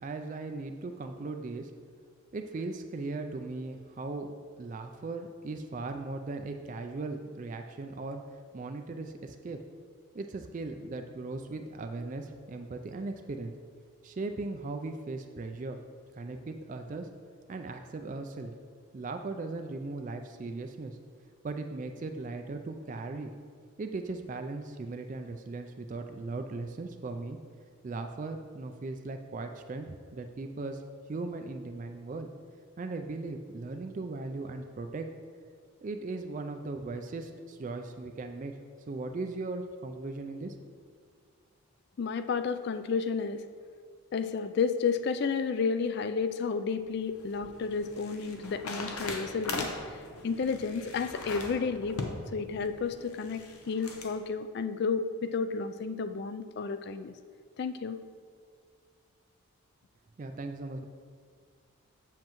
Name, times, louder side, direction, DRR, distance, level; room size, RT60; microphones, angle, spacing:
voice 1, 0.0-1.7 2.3-4.3 4.6-8.2 8.5-9.6 10.1-13.5 14.0-15.8 16.1-17.1 17.5-18.5 18.9-21.0 21.4-23.3 23.8-27.4 27.8-30.8 31.1-32.3 32.8-35.1 35.8-38.5 38.9-40.5 60.2-60.8, right 3 dB, 35° right, 6 dB, 0.3 m, -38 dB
voice 2, 42.0-43.5 44.1-57.1 57.6-58.0, left 5 dB, 50° left, 10 dB, 0.3 m, -32 dB
sound 1, 46.8-54.1, left 3 dB, 85° left, 0.8 m, -40 dB
7.6 x 7.4 x 3.0 m, 2.1 s
head